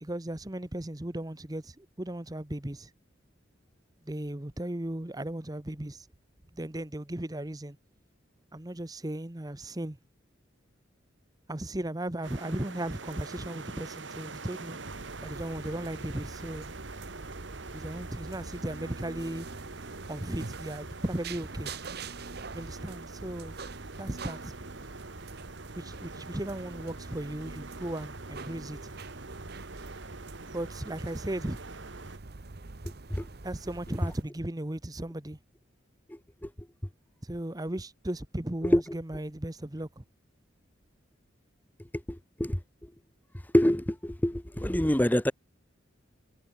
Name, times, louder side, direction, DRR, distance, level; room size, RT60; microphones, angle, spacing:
voice 1, 0.0-2.9 4.0-6.1 6.6-7.8 8.5-10.0 11.5-14.8 15.2-16.7 17.7-19.5 20.1-21.7 22.5-23.6 24.0-24.5 25.7-28.9 30.5-31.6 33.4-35.4 37.2-40.0, right 1 dB, 20° right, 1.0 m, -36 dB
sound 1, 12.2-32.2, right 3 dB, 75° right, 2.3 m, -45 dB
sound 2, 14.8-34.2, right 3 dB, 55° right, 1.0 m, -44 dB
voice 2, 42.1-42.6 43.5-45.3, equal, 10° left, 0.8 m, -25 dB
head